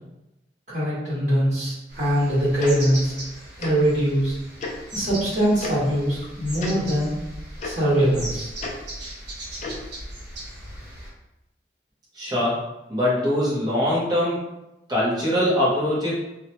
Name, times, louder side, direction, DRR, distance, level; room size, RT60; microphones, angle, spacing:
voice 1, 0.7-3.1 3.6-4.4 4.9-7.1 7.6-8.5, equal, 40° right, -10 dB, 1.3 m, -22 dB
sound 1, 1.9-11.1, right 1 dB, 70° right, 1.0 m, -38 dB
Tick-tock, 2.6-2.7 3.6-3.7 4.6-4.7 5.6-5.7 6.6-6.7 7.6-7.7 8.6-8.7 9.6-9.8, left 3 dB, 40° left, 0.4 m, -32 dB
voice 2, 12.1-12.6 12.9-14.4 14.9-16.1, left 1 dB, 20° right, -7 dB, 0.8 m, -22 dB
2.7 x 2.1 x 2.8 m, 0.94 s
head